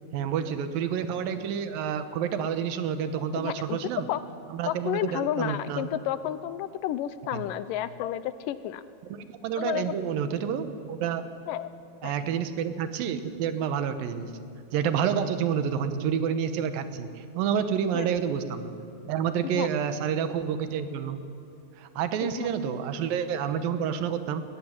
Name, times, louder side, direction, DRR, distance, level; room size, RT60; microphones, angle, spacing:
voice 1, 0.0-4.1 4.5-5.9 7.3-7.5 9.1-11.3 12.0-14.3 14.7-18.7 19.1-21.2 21.8-24.4, right 8 dB, 80° right, 10 dB, 2.9 m, -29 dB
voice 2, 3.4-3.8 4.1-4.2 4.7-8.8 9.6-10.0 11.5-11.7 12.0-12.1 17.9-18.1 19.6-19.7 22.2-22.5, left 11 dB, 80° left, 14 dB, 2.2 m, -31 dB
20.5 x 15.5 x 9.9 m, 2.5 s
omnidirectional pair, 4.1 m